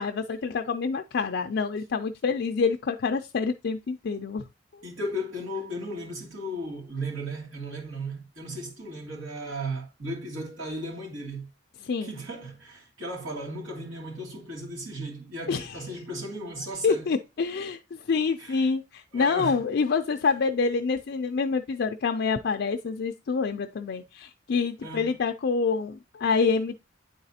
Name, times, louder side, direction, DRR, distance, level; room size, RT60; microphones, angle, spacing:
voice 1, 0.0-4.4 11.8-12.1 15.5-15.8 16.8-26.7, left 5 dB, 55° left, 0.4 m, -27 dB
voice 2, 4.8-11.5 12.0-17.1 18.4-18.7 19.1-19.6 24.8-25.1, right 1 dB, 85° right, 2.5 m, -35 dB
9.3 x 4.0 x 2.8 m
head